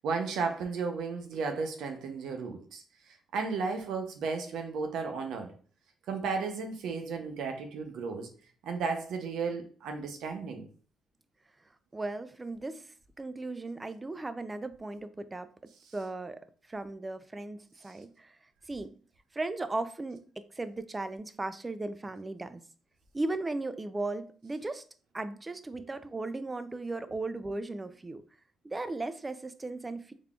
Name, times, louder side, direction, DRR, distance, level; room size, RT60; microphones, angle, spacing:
voice 1, 0.0-5.5 6.1-8.3 8.6-10.7, right 4 dB, 80° right, 0.6 m, -34 dB
voice 2, 11.9-15.5 15.9-18.4 18.7-18.9 19.3-22.6 23.1-24.8 25.1-28.2 28.6-30.1, right 2 dB, 20° right, 0.4 m, -37 dB
3.6 x 3.5 x 2.3 m
cardioid pair, 90°, 0 cm